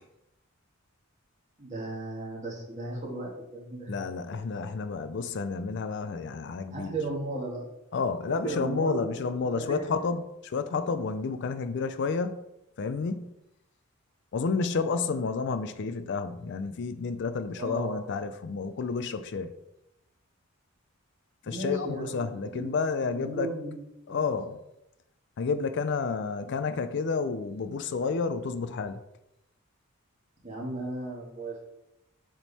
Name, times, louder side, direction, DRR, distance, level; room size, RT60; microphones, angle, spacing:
voice 1, 1.6-3.9 6.7-7.7 8.4-9.9 17.6-18.2 21.5-22.8 23.0-24.4 30.4-31.6, right 2 dB, 35° right, 1.8 m, -36 dB
voice 2, 3.9-6.9 7.9-12.4 12.8-13.3 14.3-19.5 21.4-23.5 24.1-24.6 25.4-29.0, left 4 dB, 55° left, 0.4 m, -30 dB
7.1 x 3.6 x 4.1 m
head